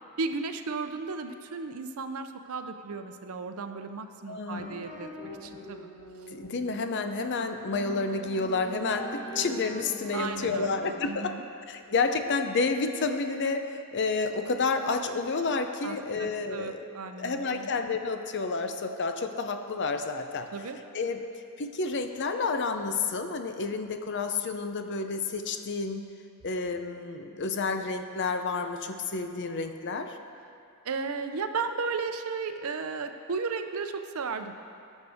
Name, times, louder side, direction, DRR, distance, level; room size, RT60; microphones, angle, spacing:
voice 1, 0.2-5.9 10.1-11.4 15.8-17.7 20.5-20.8 30.8-34.5, right 4 dB, 70° right, 7 dB, 0.6 m, -35 dB
voice 2, 4.3-4.9 6.3-11.3 11.7-16.8 17.2-20.5 20.9-21.2 21.6-26.0 26.4-30.2, left 4 dB, 50° left, 7 dB, 0.6 m, -30 dB
sound 1, 4.6-11.0, equal, 20° left, 1.7 m, -43 dB
17.5 x 6.3 x 3.5 m, 2.5 s
head